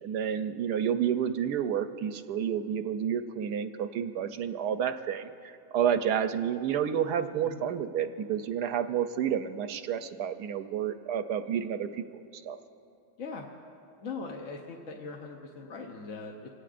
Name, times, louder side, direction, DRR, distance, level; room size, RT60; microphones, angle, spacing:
voice 1, 0.0-12.6, right 8 dB, 75° right, 9 dB, 1.1 m, -30 dB
voice 2, 14.0-16.5, left 4 dB, 55° left, 1 dB, 1.1 m, -40 dB
25.5 x 18.0 x 2.5 m, 2.5 s
omnidirectional pair, 1.9 m